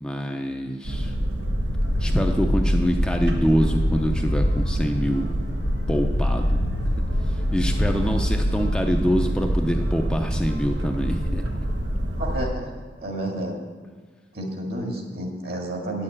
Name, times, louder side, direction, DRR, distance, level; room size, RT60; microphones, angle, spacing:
voice 1, 0.0-1.1 2.0-5.3 5.9-6.6 7.3-11.4, equal, 5° left, 2 dB, 0.5 m, -25 dB
Boat Water vehicle, 0.8-12.5, equal, 90° right, 1.3 m, -26 dB
sound 1, 1.7-4.9 5.6-8.9, left 1 dB, 75° left, 0.7 m, -26 dB
voice 2, 12.2-12.7 13.0-13.6 14.3-16.0, right 1 dB, 60° right, 1 dB, 2.0 m, -30 dB
8.7 x 6.6 x 8.6 m, 1.4 s
head